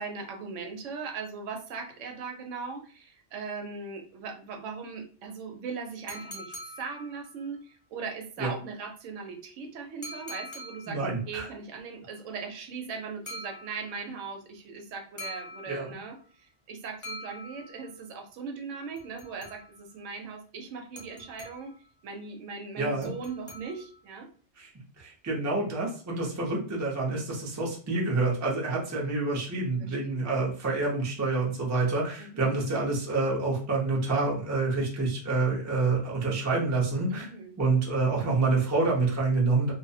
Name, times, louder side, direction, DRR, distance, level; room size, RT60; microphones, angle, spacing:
voice 1, 0.0-11.0 11.3-21.8 22.0-24.3 29.7-30.3 32.2-32.6 37.1-37.5, right 5 dB, 80° right, 3 dB, 0.9 m, -39 dB
sound 1, 6.1-7.6 10.0-11.2 13.3-14.1 15.2-16.2 17.0-18.0 19.0-19.9 21.0-21.9 23.0-24.1, left 1 dB, 35° left, 0.6 m, -44 dB
voice 2, 10.9-11.5 15.7-15.9 22.8-23.1 24.6-24.7 25.0-37.3 37.6-39.7, right 3 dB, 20° right, -3 dB, 0.4 m, -27 dB
2.3 x 2.0 x 2.6 m, 0.41 s
omnidirectional pair, 1.3 m